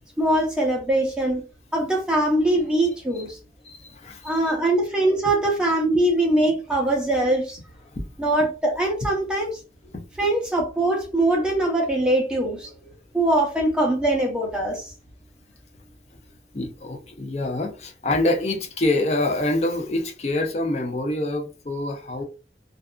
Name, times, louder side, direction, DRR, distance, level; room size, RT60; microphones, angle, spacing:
voice 1, 0.2-1.4 1.7-3.4 4.2-7.6 8.2-9.6 10.2-12.7 13.1-14.9, right 1 dB, 5° right, 0.7 m, -22 dB
voice 2, 3.6-4.5 7.9-8.1 9.9-10.0 16.5-22.2, left 2 dB, 35° left, 0.5 m, -26 dB
2.6 x 2.4 x 2.2 m
head